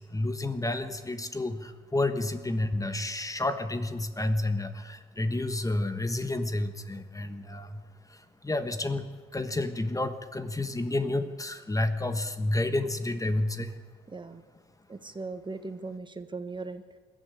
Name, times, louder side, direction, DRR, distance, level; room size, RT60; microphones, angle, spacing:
voice 1, 0.0-13.8, left 2 dB, 15° left, 10 dB, 1.4 m, -30 dB
voice 2, 14.1-14.4 14.9-17.0, right 3 dB, 25° right, 9 dB, 1.4 m, -39 dB
21.0 x 13.5 x 9.9 m, 1.4 s
cardioid pair, 90°, 20 cm